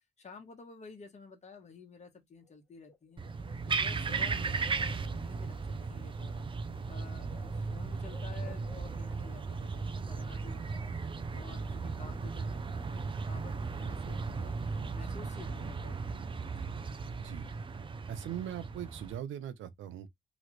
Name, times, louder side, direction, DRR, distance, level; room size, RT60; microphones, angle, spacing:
voice 1, 0.2-6.5 6.9-16.7, left 4 dB, 35° left, 1.2 m, -52 dB
Bird, 2.4-2.5 2.8-5.3 6.4-6.6 6.9-9.3, left 4 dB, 10° left, 1.0 m, -57 dB
sound 1, 3.2-19.2, right 4 dB, 25° right, 0.5 m, -36 dB
voice 2, 18.1-20.1, right 10 dB, 80° right, 0.7 m, -40 dB
3.1 x 2.4 x 3.1 m
cardioid pair, 90°, 20 cm